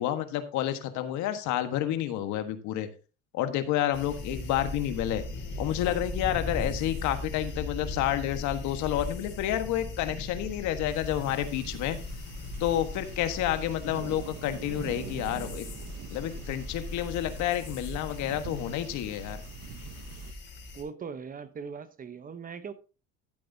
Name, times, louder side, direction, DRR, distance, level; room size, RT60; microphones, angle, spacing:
voice 1, 0.0-2.9 3.3-5.2 5.6-12.0 12.6-15.7 16.1-19.4, left 12 dB, 70° left, 9 dB, 1.5 m, -30 dB
sound 1, 3.9-20.8, left 2 dB, 40° left, 3.7 m, -39 dB
sound 2, 10.8-20.3, right 10 dB, 55° right, 1.0 m, -45 dB
voice 2, 20.8-22.7, right 6 dB, 25° right, 12 dB, 0.9 m, -40 dB
13.5 x 7.8 x 2.8 m, 0.34 s
cardioid pair, 115°, 31 cm